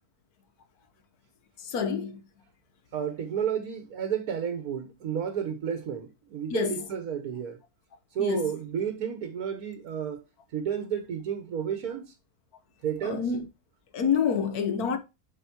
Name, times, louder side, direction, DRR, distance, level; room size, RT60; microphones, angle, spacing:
voice 1, 1.6-2.2 6.5-6.8 8.2-8.5 13.0-13.5 13.9-15.0, left 6 dB, 85° left, 1.5 m, -27 dB
voice 2, 2.9-7.6 8.1-10.2 10.5-12.1 12.8-13.2, right 8 dB, 80° right, 1.5 m, -31 dB
8.0 x 6.0 x 2.9 m
omnidirectional pair, 1.6 m